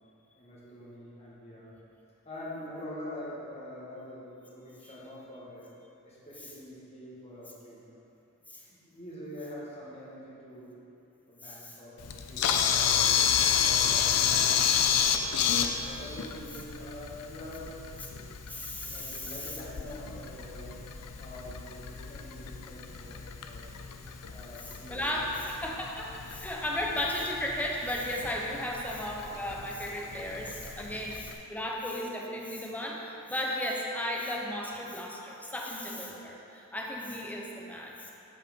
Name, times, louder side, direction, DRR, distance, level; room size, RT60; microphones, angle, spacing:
voice 1, 0.3-1.7 2.2-5.7 6.0-8.0 8.6-10.7 11.3-13.3 13.6-15.0 15.8-17.8 18.8-20.8 21.2-23.7 24.3-25.3 32.2-32.3, left 1 dB, 30° left, -7 dB, 1.8 m, -45 dB
voice 2, 11.4-11.7 18.5-19.5 24.6-37.9, left 1 dB, 5° left, -1 dB, 0.9 m, -35 dB
Camera, 12.0-31.3, left 8 dB, 85° left, 0.5 m, -31 dB
7.8 x 5.7 x 5.3 m, 2.7 s
head